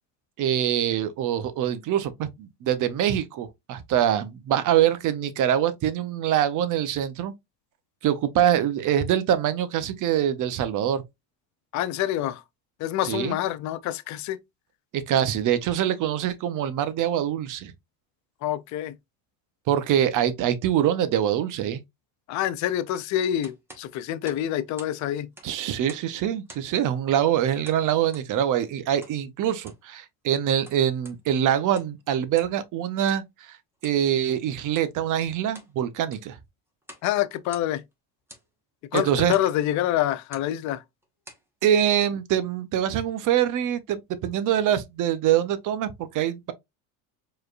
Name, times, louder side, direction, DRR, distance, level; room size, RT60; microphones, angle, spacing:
voice 1, 0.4-7.3 8.0-11.0 13.1-13.4 14.9-17.7 19.7-21.8 25.4-33.2 33.8-36.4 38.9-39.3 41.6-46.5, right 10 dB, 45° right, 0.7 m, -24 dB
voice 2, 11.7-12.4 12.8-14.4 18.4-18.9 22.3-25.3 37.0-37.8 38.9-40.8, left 12 dB, 45° left, 0.5 m, -26 dB
sound 1, 23.4-25.0 25.2-26.1 26.5-26.8 27.6-28.3 29.0-29.2 29.5-29.9 30.4-31.2 31.6-32.0 32.3-32.6 33.1-33.2 33.8-34.0 34.7-34.9 35.3-35.7 36.0-36.3 36.8-37.1 37.4-37.9 38.3-38.5 38.9-39.5 40.2-40.5 41.0-41.5, right 1 dB, 5° right, 1.1 m, -48 dB
4.6 x 3.2 x 2.4 m
supercardioid pair, 110°, 42 cm